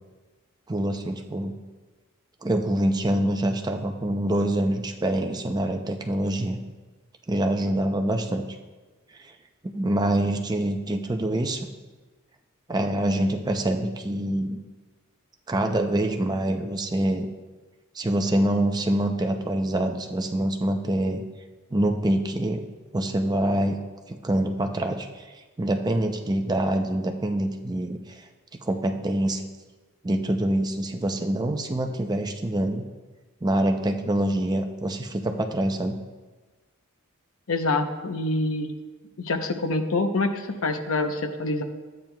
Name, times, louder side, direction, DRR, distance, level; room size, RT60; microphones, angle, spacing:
voice 1, 0.7-1.5 2.4-6.6 7.3-8.4 9.2-9.3 9.6-11.6 12.7-14.6 15.5-17.3 17.9-21.2 21.7-22.6 22.9-23.8 24.1-25.3 25.6-28.2 28.6-29.4 30.0-32.8 33.4-36.0, right 1 dB, 20° right, 5 dB, 0.5 m, -25 dB
voice 2, 37.5-38.7 39.2-41.6, left 2 dB, 70° left, 6 dB, 0.7 m, -26 dB
12.5 x 8.7 x 2.3 m, 1.3 s
head